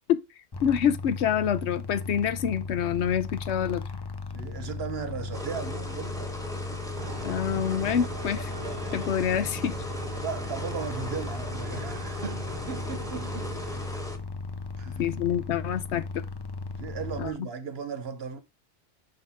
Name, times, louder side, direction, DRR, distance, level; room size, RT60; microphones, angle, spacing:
sound 1, 0.5-17.3, left 4 dB, 30° left, 0.5 m, -37 dB
voice 1, 0.6-3.8 7.2-8.5 8.9-9.8 15.0-16.2 17.2-17.3, left 9 dB, 70° left, 0.9 m, -26 dB
voice 2, 4.3-6.8 10.2-13.6 14.8-15.0 16.8-18.4, right 6 dB, 60° right, 1.1 m, -36 dB
sound 2, 5.3-14.2, equal, 5° left, 1.1 m, -39 dB
sound 3, 7.0-13.9, right 5 dB, 40° right, 0.3 m, -42 dB
6.3 x 5.6 x 3.5 m
omnidirectional pair, 1.2 m